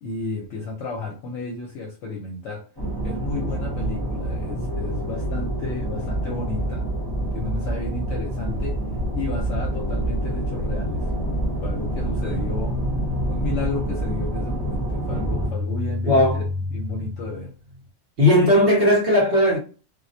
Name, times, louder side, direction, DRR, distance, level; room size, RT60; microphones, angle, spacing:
voice 1, 0.0-2.6 3.0-6.8 7.3-8.8 9.1-11.1 11.6-12.7 13.3-16.4 16.7-17.5, left 3 dB, 70° left, 0.8 m, -32 dB
sound 1, 2.8-15.5, right 1 dB, 20° left, 0.7 m, -28 dB
sound 2, 3.4-13.5, equal, 40° left, 1.0 m, -33 dB
sound 3, 12.3-17.9, left 2 dB, 80° right, 1.0 m, -31 dB
voice 2, 16.1-16.4 18.2-19.6, left 1 dB, 55° right, 0.9 m, -17 dB
2.3 x 2.0 x 2.6 m
omnidirectional pair, 1.3 m